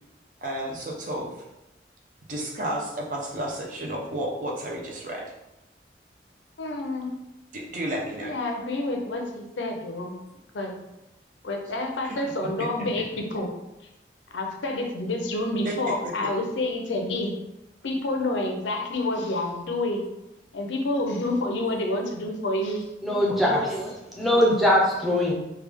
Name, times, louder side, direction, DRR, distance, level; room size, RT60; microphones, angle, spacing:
voice 1, 0.4-1.3 2.3-5.3 7.5-8.3 12.0-12.1 15.6-15.9, right 1 dB, 45° right, -2 dB, 0.6 m, -32 dB
voice 2, 6.6-7.1 8.2-10.1 10.5-10.8 11.4-13.6 14.3-17.4 17.8-20.1 20.5-22.9, left 2 dB, 85° left, 3 dB, 0.6 m, -28 dB
voice 3, 23.0-25.3, equal, ahead, -4 dB, 0.6 m, -22 dB
3.2 x 2.3 x 3.4 m, 0.91 s
head